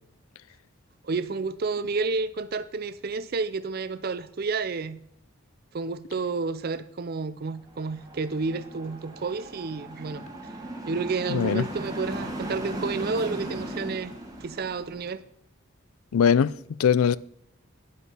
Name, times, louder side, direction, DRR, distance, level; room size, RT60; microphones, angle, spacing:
voice 1, 1.0-5.0 5.7-10.2 10.9-14.1 14.4-15.2, right 4 dB, 45° right, 0.4 m, -30 dB
sound 1, 7.7-15.1, right 1 dB, 15° right, 1.3 m, -37 dB
voice 2, 11.3-11.7 16.1-17.2, left 7 dB, 80° left, 0.4 m, -21 dB
10.0 x 8.3 x 5.6 m
head